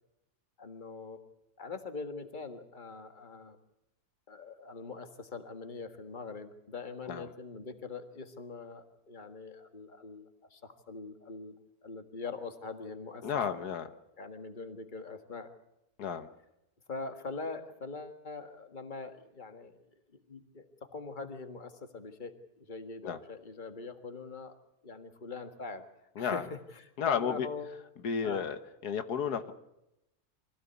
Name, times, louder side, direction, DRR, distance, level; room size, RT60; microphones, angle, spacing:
voice 1, 0.6-1.2 1.6-3.6 4.3-11.6 11.8-13.3 14.2-15.5 16.9-19.8 20.1-24.6 24.8-25.8 26.2-26.5 26.7-27.7 28.2-28.5, left 4 dB, 30° left, 7 dB, 1.8 m, -43 dB
voice 2, 13.2-13.9 16.0-16.3 23.0-23.2 26.2-26.4 27.0-27.5 28.0-29.5, left 7 dB, 85° left, 9 dB, 1.7 m, -32 dB
24.5 x 16.5 x 8.3 m, 0.87 s
omnidirectional pair, 1.6 m